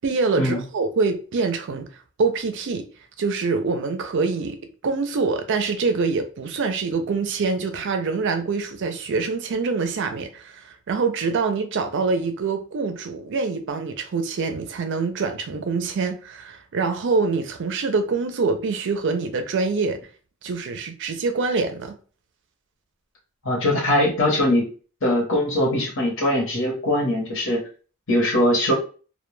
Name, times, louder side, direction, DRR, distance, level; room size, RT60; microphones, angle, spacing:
voice 1, 0.0-1.9 2.2-2.9 3.2-4.6 4.8-20.0 20.4-22.0, right 4 dB, 60° right, 0.4 m, -25 dB
voice 2, 23.4-24.7 25.0-27.6 28.1-28.7, left 1 dB, 60° left, 0.9 m, -21 dB
2.2 x 2.2 x 3.0 m
head